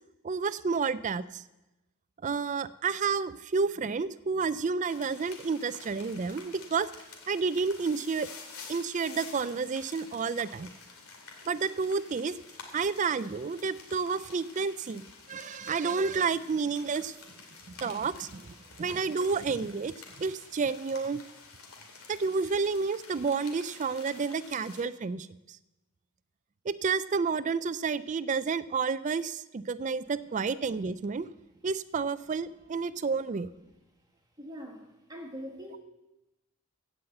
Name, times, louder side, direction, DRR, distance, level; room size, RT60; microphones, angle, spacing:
voice 1, 0.2-1.4 2.2-6.9 7.3-8.3 8.7-10.7 11.5-12.3 12.7-15.0 15.3-17.1 17.8-18.5 18.8-21.2 22.1-25.3 26.7-31.3 31.6-33.5, right 5 dB, 35° right, 16 dB, 0.3 m, -30 dB
sound 1, 4.9-24.8, left 4 dB, 75° left, 2.4 m, -50 dB
voice 2, 34.4-35.8, equal, 15° right, 1 dB, 1.7 m, -43 dB
15.5 x 5.6 x 7.8 m, 1.0 s
head